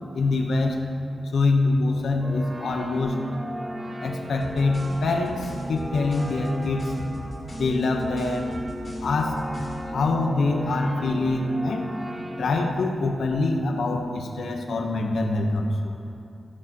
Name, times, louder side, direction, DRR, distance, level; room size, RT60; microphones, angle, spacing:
voice 1, 0.1-0.9 1.3-3.2 4.0-6.9 7.6-8.5 9.0-9.4 9.9-11.9 12.4-15.9, left 3 dB, 85° left, 3 dB, 1.1 m, -24 dB
sound 1, 2.2-12.7, equal, 20° right, 0.7 m, -36 dB
sound 2, 4.4-9.9, left 1 dB, 40° left, 2.8 m, -40 dB
15.0 x 11.0 x 3.1 m, 2.8 s
wide cardioid pair, 155°, 0 cm